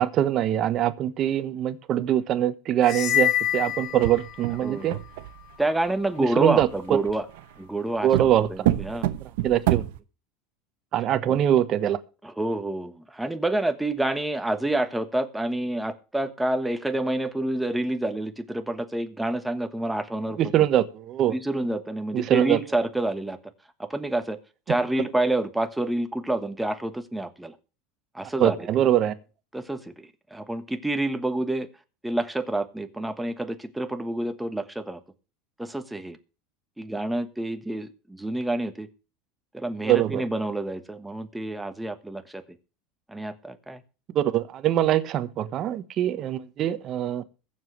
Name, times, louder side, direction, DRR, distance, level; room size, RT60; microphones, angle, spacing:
voice 1, 0.0-5.0 6.4-6.7 8.0-8.5 9.4-9.8 10.9-12.0 20.4-21.3 22.1-22.6 28.4-29.1 39.8-40.2 44.1-47.2, right 11 dB, 40° right, 1.2 m, -23 dB
sound 1, 2.8-4.7, left 12 dB, 45° left, 0.5 m, -26 dB
sound 2, 3.9-5.5 6.6-7.4 8.1-10.0, right 15 dB, 80° right, 0.9 m, -27 dB
voice 2, 4.6-5.0 5.6-7.2 7.6-9.1 11.3-11.4 12.2-20.4 21.3-23.4 23.8-24.4 24.7-27.6 28.1-28.7 29.5-31.7 32.0-35.0 35.6-36.2 36.8-38.9 39.5-42.4 43.1-43.8, right 1 dB, 5° right, 1.3 m, -28 dB
22.0 x 7.3 x 3.3 m
supercardioid pair, 140°, 0 cm